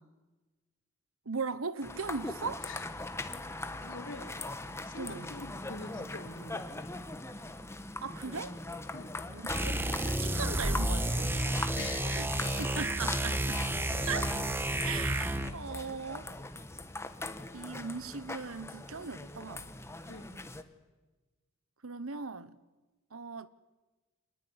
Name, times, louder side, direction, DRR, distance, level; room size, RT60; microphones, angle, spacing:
voice 1, 1.3-2.7 5.0-5.3 8.0-8.5 9.3-11.6 12.2-12.3 12.6-13.6 14.1-14.3 14.8-16.3 17.5-19.8 21.8-22.6 23.1-23.5, right 5 dB, 70° right, 1.1 m, -39 dB
sound 1, 1.8-20.6, left 2 dB, 10° left, 1.3 m, -41 dB
voice 2, 3.8-4.3 4.8-6.9 8.9-9.1 11.8-12.2 14.0-14.2 20.1-20.3, left 3 dB, 60° left, 3.4 m, -45 dB
sound 2, 9.5-15.6, right 1 dB, 10° right, 1.4 m, -31 dB
25.5 x 20.5 x 9.8 m
head